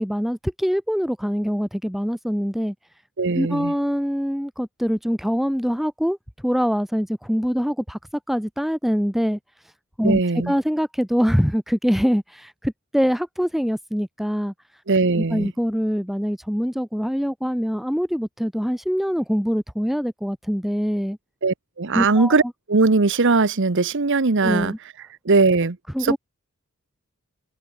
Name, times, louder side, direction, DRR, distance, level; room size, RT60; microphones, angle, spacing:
voice 1, 0.0-2.7 3.3-6.2 6.4-8.0 8.3-9.4 10.0-10.2 10.5-14.5 15.3-21.2 21.9-22.5 24.4-24.8 25.9-26.2, equal, ahead, 1.4 m, -24 dB
voice 2, 3.2-3.7 10.0-10.5 14.9-15.5 21.4-22.4 22.7-24.7 25.2-26.2, right 3 dB, 55° right, 1.0 m, -20 dB
open air
head